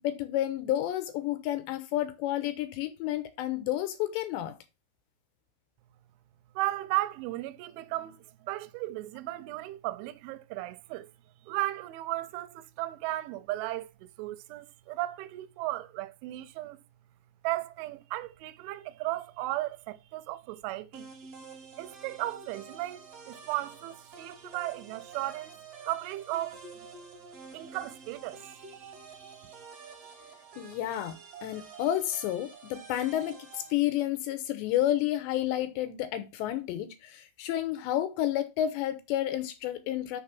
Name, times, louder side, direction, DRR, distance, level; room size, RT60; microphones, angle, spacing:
voice 1, 0.0-4.5 30.6-40.2, left 12 dB, 85° left, 2.7 m, -30 dB
voice 2, 6.6-11.1 11.4-16.8 17.4-21.1 21.8-25.5 25.8-26.6 27.5-28.9 29.4-29.6, right 17 dB, 80° right, 3.0 m, -35 dB
sound 1, 20.9-33.7, right 5 dB, 60° right, 1.6 m, -48 dB
6.7 x 5.7 x 5.8 m
omnidirectional pair, 5.6 m